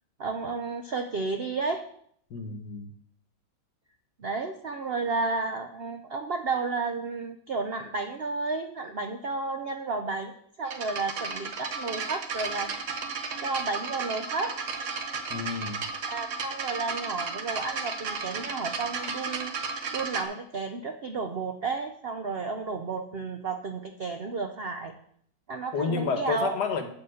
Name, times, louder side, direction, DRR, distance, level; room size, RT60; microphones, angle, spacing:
voice 1, 0.2-1.8 4.2-12.9 13.4-14.6 16.1-19.5 19.9-24.9 25.5-26.6, right 4 dB, 75° right, 6 dB, 0.5 m, -32 dB
voice 2, 2.3-2.9 15.3-15.8 25.7-26.9, left 5 dB, 65° left, 7 dB, 1.7 m, -30 dB
sound 1, 10.7-20.2, right 4 dB, 50° right, 1.1 m, -34 dB
8.1 x 6.8 x 6.4 m, 0.66 s
omnidirectional pair, 2.0 m